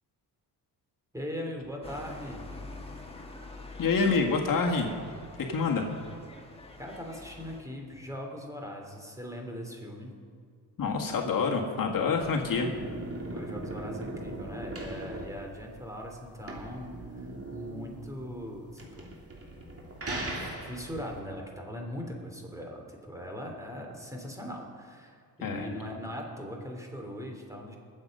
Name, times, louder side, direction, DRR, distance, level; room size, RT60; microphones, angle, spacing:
voice 1, 1.1-2.4 6.8-10.2 13.3-19.1 20.1-27.8, equal, 10° right, 1 dB, 2.9 m, -40 dB
sound 1, 1.8-7.6, left 2 dB, 15° left, 1.9 m, -46 dB
voice 2, 3.8-4.9 5.5-5.9 10.8-12.7 25.4-25.7, left 4 dB, 55° left, 1 dB, 1.8 m, -27 dB
sound 2, 11.9-21.2, right 2 dB, 35° right, 3.1 m, -39 dB
21.5 x 7.9 x 5.4 m, 2.1 s
cardioid pair, 90°, 40 cm